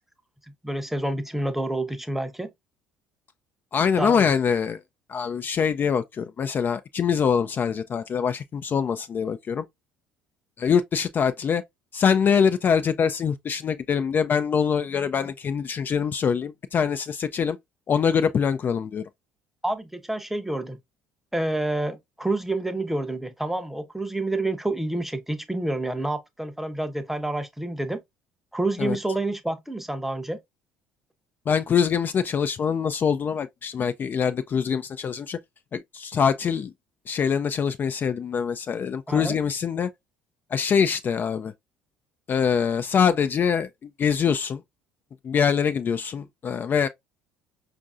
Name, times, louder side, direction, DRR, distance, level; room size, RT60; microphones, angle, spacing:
voice 1, 0.6-2.5 4.0-4.3 19.6-20.8 21.3-28.0 28.5-30.4 39.1-39.4, right 2 dB, 5° right, 0.7 m, -28 dB
voice 2, 3.7-4.8 5.1-9.6 10.6-11.6 11.9-17.6 17.9-19.0 28.8-29.0 31.5-35.4 35.7-36.7 37.1-39.9 40.5-41.5 42.3-44.6 45.2-46.9, left 7 dB, 35° left, 0.3 m, -24 dB
5.2 x 2.5 x 2.4 m
hypercardioid pair, 60°, 5 cm